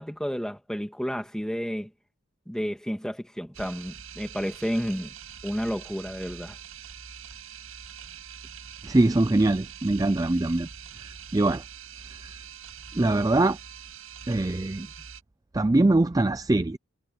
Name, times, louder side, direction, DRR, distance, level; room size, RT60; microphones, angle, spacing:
voice 1, 0.0-1.9 2.5-5.2 5.4-6.6, equal, 5° left, 2.1 m, -31 dB
sound 1, 3.5-15.2, right 7 dB, 80° right, 5.9 m, -44 dB
voice 2, 8.8-10.7 11.3-11.6 13.0-13.6 14.3-14.9 15.5-16.8, right 2 dB, 15° right, 0.4 m, -22 dB
head